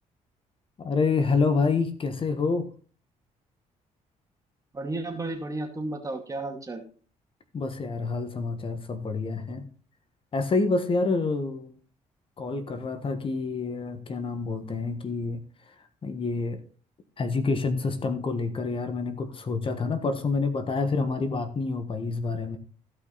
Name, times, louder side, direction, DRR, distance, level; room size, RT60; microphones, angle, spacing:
voice 1, 0.8-2.7 7.5-9.7 10.3-11.7 12.4-15.4 16.0-16.6 17.2-22.6, left 4 dB, 40° left, 8 dB, 1.4 m, -27 dB
voice 2, 4.7-6.8, right 2 dB, 25° right, 4 dB, 2.4 m, -33 dB
16.0 x 5.7 x 4.0 m, 0.40 s
cardioid pair, 100°, 14 cm